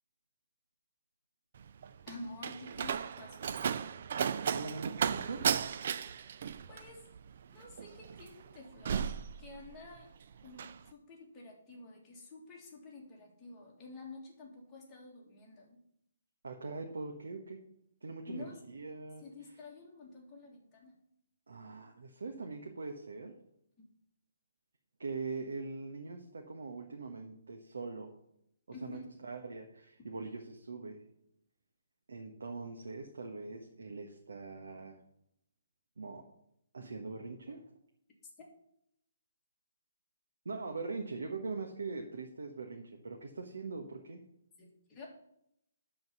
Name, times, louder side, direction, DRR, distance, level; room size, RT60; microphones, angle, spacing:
Slam, 1.5-10.0 10.3-10.8, right 7 dB, 35° right, 0.3 m, -35 dB
voice 1, 2.1-3.8 6.7-7.0 7.5-9.1 9.4-10.1 10.4-15.8 18.3-18.6 19.2-21.0 28.7-29.0 44.6-45.1, left 2 dB, 10° left, -3 dB, 1.6 m, -49 dB
voice 2, 4.5-5.4 16.4-17.6 18.0-19.2 21.5-23.3 25.0-28.1 28.8-31.0 32.1-35.0 36.0-36.2 36.7-37.6 40.4-44.2, right 3 dB, 90° right, 3 dB, 1.3 m, -42 dB
11.0 x 4.0 x 6.7 m, 0.76 s
hypercardioid pair, 175°, 0 cm